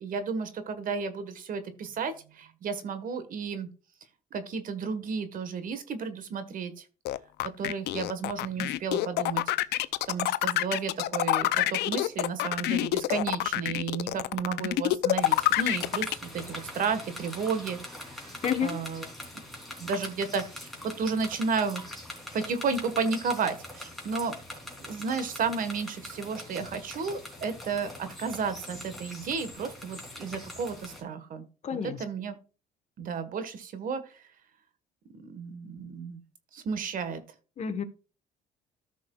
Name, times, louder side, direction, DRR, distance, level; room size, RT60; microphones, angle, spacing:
voice 1, 0.0-3.7 4.3-6.8 7.4-9.4 10.1-17.8 18.2-18.3 18.6-19.0 19.8-21.8 22.3-24.4 24.8-31.4 31.8-32.4 33.0-34.2 35.1-36.2 36.5-37.2, right 5 dB, 55° right, 10 dB, 1.4 m, -32 dB
sound 1, 7.1-16.1, left 16 dB, 75° left, 0.5 m, -26 dB
sound 2, 15.2-31.0, left 1 dB, ahead, 3.2 m, -43 dB
voice 2, 18.4-18.8 31.6-32.0 37.6-37.8, left 7 dB, 40° left, 8 dB, 1.3 m, -30 dB
14.0 x 6.2 x 2.4 m, 0.36 s
cardioid pair, 110°, 17 cm